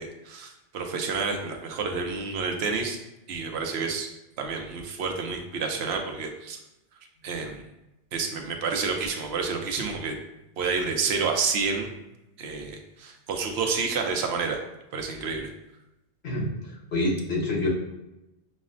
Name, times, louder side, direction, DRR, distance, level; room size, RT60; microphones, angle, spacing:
voice 1, 0.0-3.0 3.3-4.1 4.4-6.6 7.2-7.6 8.1-10.2 10.6-11.9 12.4-14.6 14.9-15.5, right 4 dB, 90° right, 3 dB, 0.9 m, -29 dB
voice 2, 16.2-17.7, left 1 dB, 80° left, -3 dB, 1.2 m, -27 dB
6.1 x 2.1 x 2.5 m, 0.95 s
omnidirectional pair, 1.1 m